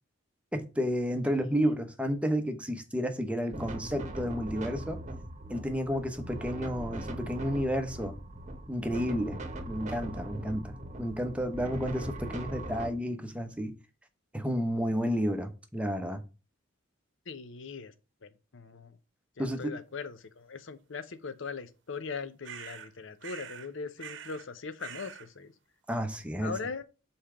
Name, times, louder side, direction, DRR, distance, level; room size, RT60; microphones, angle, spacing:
voice 1, 0.5-5.0 5.5-8.2 8.7-9.4 9.7-13.7 14.3-16.2 19.4-19.8 25.9-26.5, equal, 5° right, 0.8 m, -31 dB
sound 1, 3.5-12.9, right 1 dB, 40° right, 1.0 m, -40 dB
voice 2, 17.3-17.9 18.2-18.9 19.4-25.5 26.4-26.8, left 4 dB, 70° left, 0.7 m, -40 dB
sound 2, 22.4-22.9 23.2-23.7 24.0-24.5 24.8-25.3, right 8 dB, 65° right, 0.8 m, -44 dB
5.5 x 4.3 x 4.9 m
head